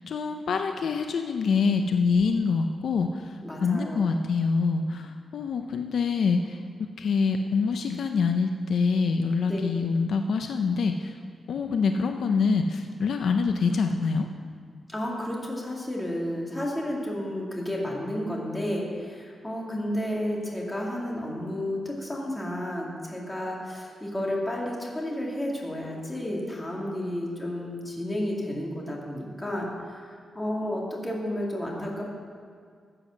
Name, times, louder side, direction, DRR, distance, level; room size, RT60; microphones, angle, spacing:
voice 1, 0.1-3.1 3.6-11.1 11.5-14.3, left 5 dB, 65° left, 5 dB, 0.6 m, -25 dB
voice 2, 3.4-4.1 9.4-9.6 14.9-30.0 30.3-32.1, left 1 dB, 10° left, -2 dB, 2.3 m, -32 dB
15.0 x 7.8 x 6.3 m, 2.1 s
wide cardioid pair, 165°, 0 cm